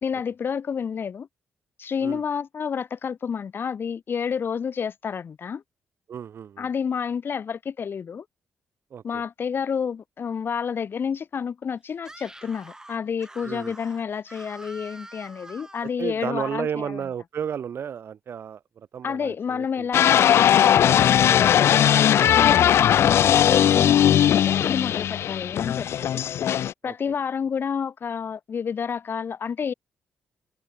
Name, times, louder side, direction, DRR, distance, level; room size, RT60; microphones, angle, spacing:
voice 1, 0.0-1.3 1.8-5.6 6.6-8.2 9.0-17.0 19.0-26.2 26.8-29.7, left 7 dB, 50° left, 1.3 m, -30 dB
voice 2, 6.1-6.7 8.9-9.2 13.4-13.7 16.0-19.9 23.6-23.8 26.8-26.9, right 8 dB, 60° right, 0.7 m, -33 dB
Screaming, 12.0-15.9, right 1 dB, 15° right, 5.4 m, -45 dB
sound 1, 19.9-26.7, left 10 dB, 65° left, 0.4 m, -18 dB
cardioid pair, 70°, 5 cm